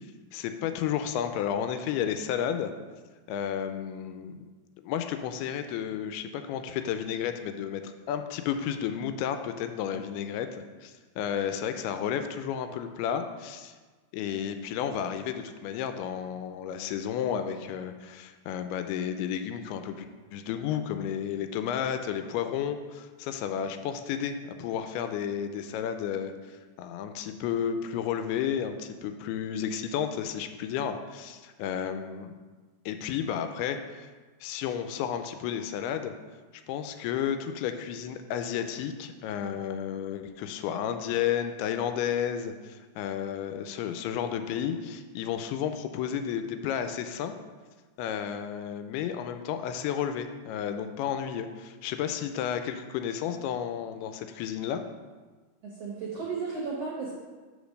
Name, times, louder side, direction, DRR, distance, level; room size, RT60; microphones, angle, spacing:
voice 1, 0.3-2.7 3.3-4.5 4.8-13.7 14.1-20.1 20.3-26.3 26.8-32.4 32.9-34.1 34.4-36.1 36.7-47.3 48.0-54.8, left 9 dB, 90° left, 8 dB, 2.6 m, -32 dB
voice 2, 55.6-57.1, right 4 dB, 75° right, -4 dB, 1.4 m, -34 dB
5.1 x 5.1 x 6.3 m, 1.4 s
omnidirectional pair, 4.5 m